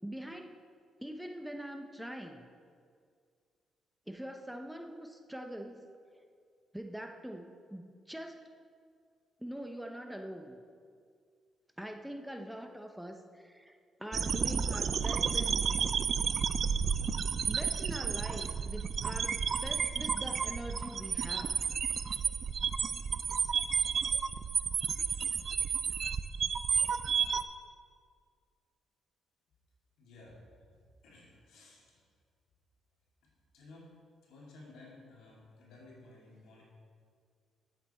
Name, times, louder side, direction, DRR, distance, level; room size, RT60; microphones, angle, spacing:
voice 1, 0.0-0.6 1.0-2.5 4.1-5.9 6.7-8.5 9.4-10.6 11.8-15.6 17.4-21.6, equal, 5° right, 4 dB, 0.7 m, -43 dB
sound 1, 14.1-27.4, right 6 dB, 50° right, 0.4 m, -31 dB
voice 2, 30.0-30.4 31.0-32.0 33.5-33.9 34.2-36.6, left 2 dB, 85° left, -4 dB, 2.7 m, -55 dB
10.5 x 8.1 x 4.4 m, 2.1 s
cardioid pair, 90°, 0 cm